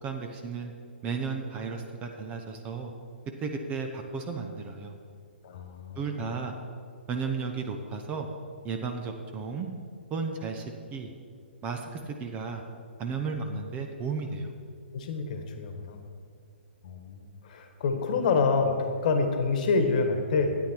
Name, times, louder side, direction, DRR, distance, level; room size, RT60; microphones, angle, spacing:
voice 1, 0.0-0.7 1.0-2.9 3.4-5.0 6.0-6.5 7.1-8.3 8.6-9.7 10.1-10.6 10.9-11.1 11.6-12.6 13.0-14.5, right 5 dB, 20° right, 4 dB, 0.9 m, -34 dB
voice 2, 5.4-6.1 14.9-16.0 16.8-20.5, left 4 dB, 45° left, 6 dB, 1.5 m, -27 dB
13.0 x 9.2 x 4.5 m, 2.2 s
figure-of-eight pair, 130°, 6 cm